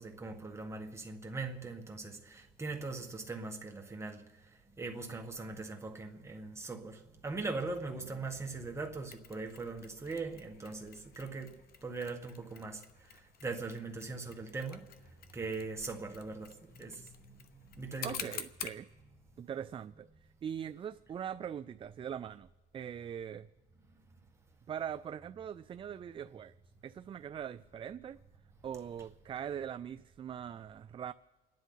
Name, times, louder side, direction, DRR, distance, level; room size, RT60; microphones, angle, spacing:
voice 1, 0.0-4.3 4.8-14.9 15.3-18.3, right 3 dB, 15° right, 1.7 m, -41 dB
Mechanisms, 9.1-18.8, left 8 dB, 65° left, 1.0 m, -49 dB
voice 2, 18.0-18.9 19.4-22.5 22.7-23.5 24.7-26.5 26.8-28.2 28.6-31.1, right 8 dB, 30° right, 0.4 m, -41 dB
29.5 x 10.5 x 4.0 m
cardioid pair, 110°, 17 cm